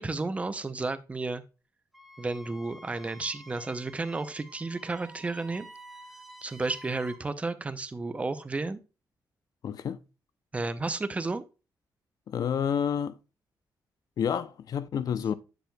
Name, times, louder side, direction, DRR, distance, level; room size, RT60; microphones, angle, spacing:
voice 1, 0.0-1.4 2.2-5.7 6.4-8.8 10.5-11.4, right 3 dB, 20° right, 0.5 m, -32 dB
Wind instrument woodwind instrument, 1.9-7.2, right 1 dB, ahead, 1.3 m, -50 dB
voice 2, 9.6-10.0 12.3-13.1 14.2-15.3, left 8 dB, 60° left, 0.5 m, -29 dB
7.6 x 6.9 x 2.2 m
wide cardioid pair, 150°, 7 cm